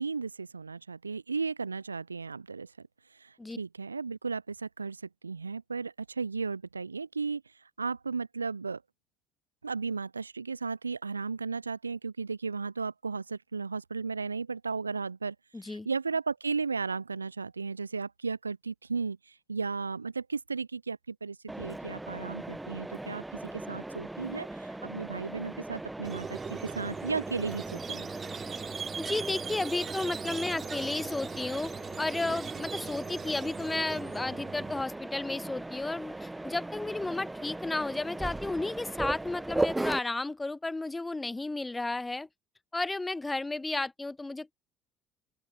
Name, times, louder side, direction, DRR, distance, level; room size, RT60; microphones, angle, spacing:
voice 1, 0.0-2.7 3.2-7.4 7.8-8.8 9.6-15.4 15.6-28.1, right 4 dB, 85° right, 0.3 m, -35 dB
voice 2, 15.5-15.9 29.0-31.7 32.0-42.3 42.7-44.5, left 2 dB, 15° left, 1.4 m, -33 dB
Mechanisms, 21.5-40.0, right 2 dB, 10° right, 0.8 m, -38 dB
Squeak, 26.0-34.8, right 6 dB, 35° right, 4.2 m, -40 dB
open air
figure-of-eight pair, 55°, 0 cm